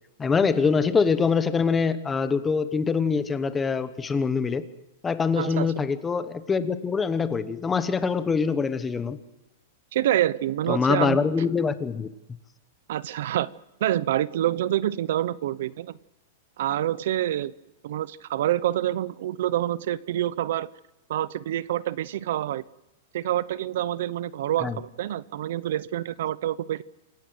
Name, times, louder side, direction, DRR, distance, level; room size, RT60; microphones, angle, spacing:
voice 1, 0.2-4.6 5.0-9.2 10.7-12.1 24.6-24.8, left 5 dB, 10° left, 11 dB, 1.1 m, -24 dB
voice 2, 5.4-5.7 9.9-11.2 12.9-13.5 13.8-16.0 16.6-17.5 17.8-20.7 21.1-22.6 23.1-26.8, right 12 dB, 60° right, 19 dB, 0.7 m, -27 dB
27.5 x 16.5 x 7.9 m, 0.97 s
supercardioid pair, 165°, 0 cm